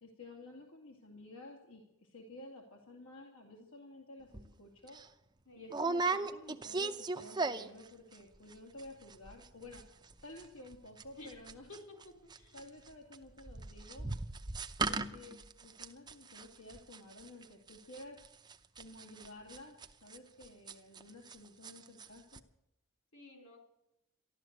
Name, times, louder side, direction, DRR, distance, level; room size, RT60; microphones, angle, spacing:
voice 1, 0.0-5.0 5.5-9.8 10.2-11.7 12.5-14.1 14.8-18.2 18.8-22.4, left 2 dB, 80° left, 0 dB, 2.5 m, -52 dB
sound 1, 4.3-4.5 4.9-5.0 5.7-8.5 8.8-8.9 9.1-9.5 9.7-21.4 21.6-22.1 22.3-22.4, right 3 dB, 20° right, 0.6 m, -38 dB
voice 2, 11.7-12.7 23.1-23.6, left 2 dB, 65° left, 3 dB, 4.2 m, -53 dB
14.0 x 12.0 x 8.1 m, 0.88 s
head